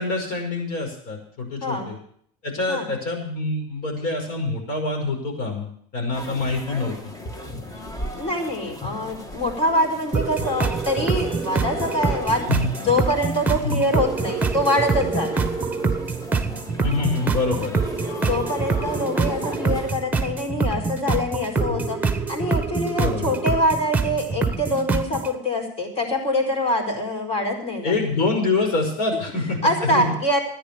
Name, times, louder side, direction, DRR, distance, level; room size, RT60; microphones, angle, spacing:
voice 1, 0.0-2.0 2.4-7.1 12.5-12.7 13.6-13.8 16.8-17.7 21.7-21.9 23.0-23.3 27.8-30.0, left 3 dB, 60° left, 3 dB, 5.6 m, -25 dB
voice 2, 1.6-1.9 2.7-2.9 8.1-12.5 12.8-15.5 18.2-27.9 29.6-30.4, left 1 dB, 35° left, 3 dB, 4.8 m, -24 dB
sound 1, 6.1-19.9, left 1 dB, 20° left, 1.6 m, -36 dB
sound 2, 10.1-25.3, right 4 dB, 10° right, 1.4 m, -25 dB
13.5 x 10.0 x 6.8 m, 0.62 s
supercardioid pair, 125°, 17 cm